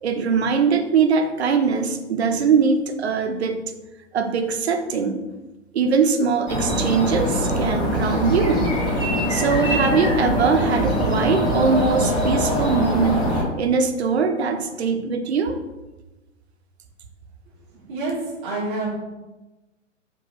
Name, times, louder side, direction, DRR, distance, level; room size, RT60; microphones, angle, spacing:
voice 1, 0.0-3.6 4.1-5.2 5.7-8.7 9.3-15.6, right 5 dB, 55° right, 6 dB, 1.0 m, -21 dB
sound 1, 6.5-13.4, equal, 10° left, 2.2 m, -23 dB
voice 2, 17.9-18.9, right 2 dB, 5° right, -9 dB, 0.3 m, -27 dB
6.9 x 3.2 x 5.5 m, 1.1 s
figure-of-eight pair, 120°, 38 cm